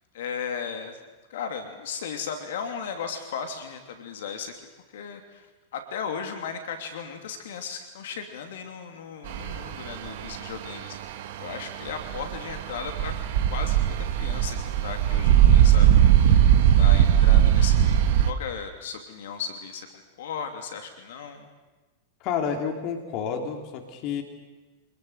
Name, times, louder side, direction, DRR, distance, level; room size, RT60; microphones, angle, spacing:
voice 1, 0.1-1.0 1.3-4.5 4.9-5.5 5.7-13.2 13.5-16.4 16.8-19.9 20.2-21.5, left 6 dB, 65° left, 6 dB, 2.9 m, -36 dB
sound 1, 9.3-18.3, right 10 dB, 60° right, 1.6 m, -19 dB
voice 2, 22.2-24.2, left 7 dB, 45° left, 4 dB, 3.4 m, -30 dB
26.0 x 20.5 x 8.2 m, 1.2 s
hypercardioid pair, 95°, 0 cm